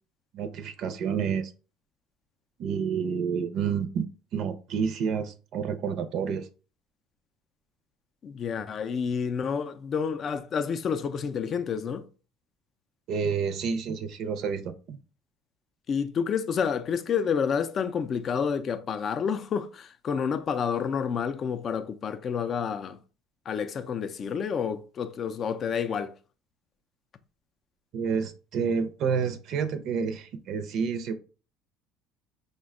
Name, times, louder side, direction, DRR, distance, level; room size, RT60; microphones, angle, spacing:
voice 1, 0.3-1.5 2.6-4.1 4.3-6.5 13.1-15.0 27.9-31.2, right 6 dB, 55° right, 0.5 m, -29 dB
voice 2, 8.2-12.1 15.9-23.0 23.5-26.1, left 6 dB, 35° left, 0.4 m, -29 dB
5.0 x 2.2 x 3.6 m
cardioid pair, 135°, 0 cm